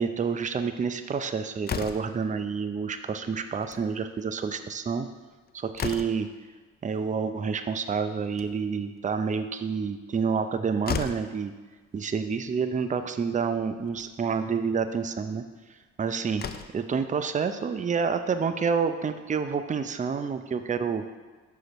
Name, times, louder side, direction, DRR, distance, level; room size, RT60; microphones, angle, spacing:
voice 1, 0.0-5.1 5.5-6.3 6.8-11.5 11.9-15.4 16.0-16.4 16.7-21.0, right 5 dB, 25° right, 9 dB, 0.5 m, -28 dB
Slam, 1.6-2.2 3.5-3.9 4.2-4.3 4.6-4.7 5.2-6.4 8.1-8.8 10.4-10.5 10.8-11.3 12.5-12.6 13.0-13.1 13.9-14.1 15.8-15.9 16.3-16.9, left 6 dB, 30° left, 0.5 m, -35 dB
5.8 x 5.2 x 5.9 m, 1.3 s
cardioid pair, 85°, 31 cm